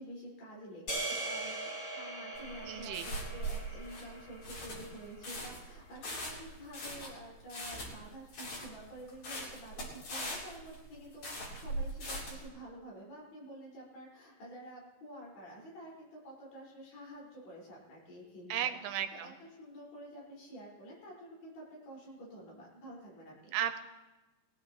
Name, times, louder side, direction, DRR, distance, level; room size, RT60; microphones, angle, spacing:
voice 1, 0.0-23.6, right 1 dB, 80° left, -5 dB, 7.3 m, -49 dB
sound 1, 0.9-5.2, right 2 dB, 35° left, 3.1 m, -41 dB
sound 2, 2.3-12.5, right 1 dB, 60° left, 5.2 m, -41 dB
voice 2, 2.7-3.1 18.5-19.3 23.5-23.8, right 10 dB, 90° right, 8 dB, 2.8 m, -34 dB
20.0 x 16.5 x 3.1 m, 1.1 s
omnidirectional pair, 4.6 m